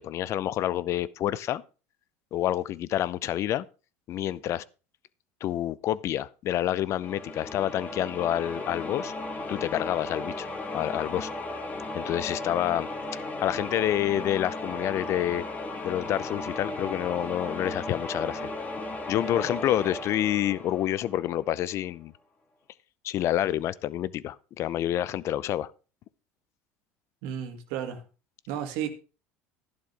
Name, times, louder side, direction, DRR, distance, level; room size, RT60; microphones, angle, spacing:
voice 1, 0.0-1.6 2.3-3.7 4.1-4.6 5.4-9.1 9.5-10.5 10.7-11.3 11.9-12.9 13.4-15.4 15.8-18.5 19.1-22.1 23.0-25.7, left 12 dB, 50° left, 0.6 m, -28 dB
sound 1, 7.0-21.6, left 2 dB, 25° left, 2.5 m, -36 dB
voice 2, 27.2-28.0 28.5-28.9, right 9 dB, 75° right, 2.1 m, -33 dB
12.0 x 11.0 x 3.4 m
supercardioid pair, 95°, 6 cm